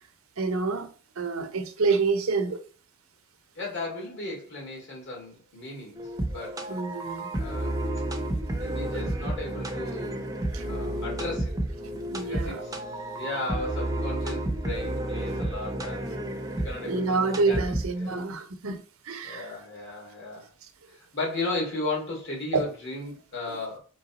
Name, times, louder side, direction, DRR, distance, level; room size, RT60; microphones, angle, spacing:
voice 1, 0.4-0.9 1.2-2.6 6.7-7.3 10.5-10.7 12.1-12.6 16.8-19.5 22.5-22.6, right 4 dB, 75° right, 0.7 m, -27 dB
voice 2, 3.6-6.6 7.4-7.8 8.6-10.2 10.7-11.6 12.2-12.8 13.2-17.6 18.0-18.2 19.2-20.5 20.9-23.8, left 2 dB, 55° left, 2.1 m, -35 dB
sound 1, 6.0-18.2, right 1 dB, 15° right, 0.6 m, -31 dB
3.8 x 3.4 x 4.0 m
head